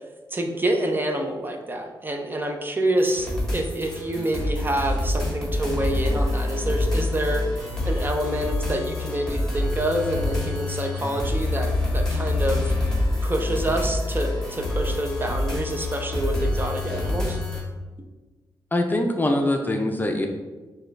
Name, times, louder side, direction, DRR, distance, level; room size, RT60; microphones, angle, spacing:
voice 1, 0.3-12.7 13.2-17.4, right 1 dB, 25° right, 4 dB, 0.5 m, -27 dB
sound 1, 3.0-17.6, left 2 dB, 5° left, 1.5 m, -26 dB
voice 2, 18.7-20.3, left 1 dB, 20° left, 3 dB, 0.5 m, -23 dB
6.3 x 2.3 x 3.3 m, 1.2 s
cardioid pair, 80°, 8 cm